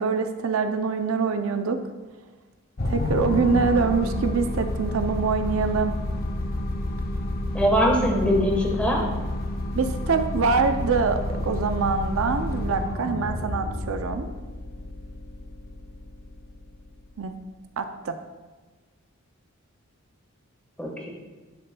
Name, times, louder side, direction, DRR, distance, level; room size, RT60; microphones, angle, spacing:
voice 1, 0.0-1.8 2.8-5.9 9.7-14.3 17.2-17.3 17.8-18.2, right 5 dB, 70° right, 8 dB, 0.4 m, -24 dB
sound 1, 2.8-17.3, left 1 dB, 45° left, 0.6 m, -30 dB
voice 2, 7.5-9.0 20.8-21.1, equal, 5° left, -1 dB, 1.2 m, -22 dB
11.0 x 6.5 x 2.2 m, 1.3 s
head